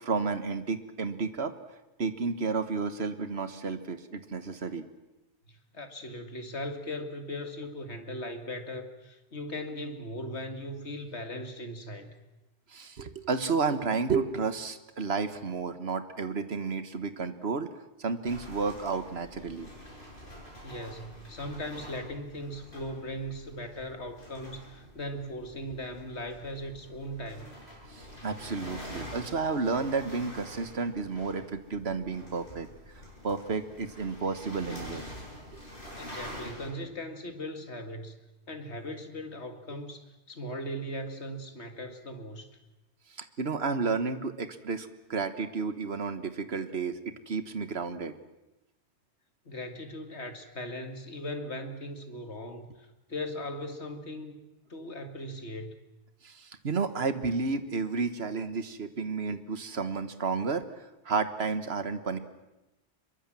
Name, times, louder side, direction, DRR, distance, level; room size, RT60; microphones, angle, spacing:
voice 1, 0.0-1.5 2.0-4.9 12.7-19.7 27.9-32.7 33.0-35.1 35.5-35.6 43.1-48.1 56.2-62.2, right 4 dB, 70° right, 11 dB, 1.7 m, -32 dB
voice 2, 5.5-12.2 20.6-27.5 35.9-38.2 38.5-42.5 49.5-54.4 54.7-55.7, left 1 dB, 85° left, 7 dB, 2.4 m, -39 dB
sound 1, 18.2-36.7, equal, 55° left, 8.4 m, -46 dB
25.0 x 23.0 x 7.6 m, 0.98 s
omnidirectional pair, 1.1 m